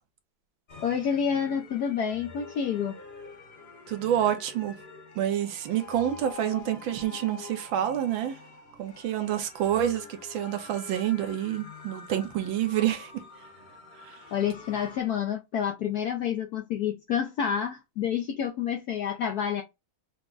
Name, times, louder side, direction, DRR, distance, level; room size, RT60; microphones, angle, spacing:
sound 1, 0.7-15.0, left 4 dB, 40° left, 1.0 m, -46 dB
voice 1, 0.8-3.0 14.3-19.6, left 8 dB, 70° left, 0.9 m, -28 dB
voice 2, 3.9-4.7 5.2-8.4 8.8-13.1 14.0-14.2, right 11 dB, 75° right, 1.5 m, -28 dB
5.9 x 2.1 x 3.8 m
omnidirectional pair, 2.3 m